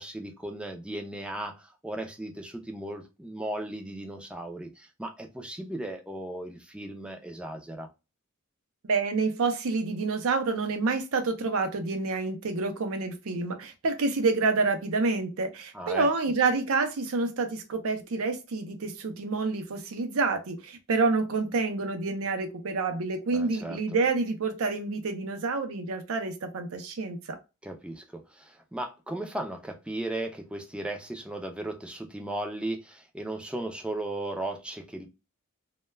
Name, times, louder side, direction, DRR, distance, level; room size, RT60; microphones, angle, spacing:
voice 1, 0.0-7.9 15.7-16.1 23.3-24.0 27.6-35.1, right 1 dB, 5° right, 0.4 m, -36 dB
voice 2, 8.8-27.4, right 3 dB, 70° right, 0.5 m, -28 dB
2.2 x 2.2 x 3.1 m
head